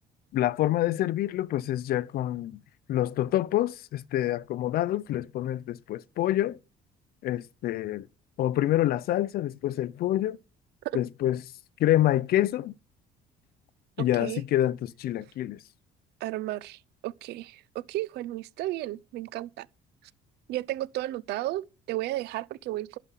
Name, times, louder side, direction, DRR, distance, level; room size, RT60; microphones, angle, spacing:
voice 1, 0.3-2.6 2.9-6.6 7.2-8.1 8.4-10.4 10.9-11.4 11.8-12.7 14.0-15.6, left 13 dB, 65° left, 0.6 m, -27 dB
voice 2, 14.0-14.4 16.2-19.7 20.5-23.0, right 16 dB, 80° right, 0.5 m, -33 dB
11.5 x 5.1 x 8.2 m
cardioid pair, 110°, 17 cm